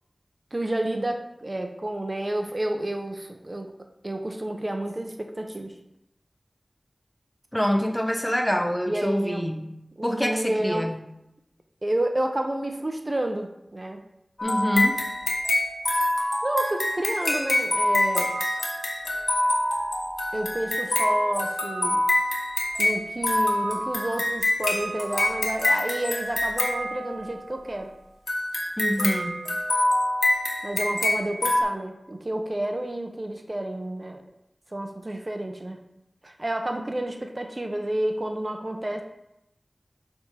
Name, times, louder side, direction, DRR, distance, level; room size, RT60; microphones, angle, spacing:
voice 1, 0.5-3.7 4.0-5.7 8.9-9.5 10.0-10.9 11.8-14.0 16.4-18.4 20.3-22.1 22.8-27.9 30.6-34.2 34.7-35.8 36.2-39.0, right 1 dB, 35° right, 4 dB, 0.8 m, -30 dB
voice 2, 7.5-9.7 10.0-11.1 14.4-14.9 28.8-29.4, equal, 10° left, 4 dB, 0.7 m, -26 dB
sound 1, 14.4-27.5 28.3-31.6, left 1 dB, 70° left, 1.5 m, -25 dB
7.6 x 3.7 x 5.7 m, 0.87 s
wide cardioid pair, 65°, 0 cm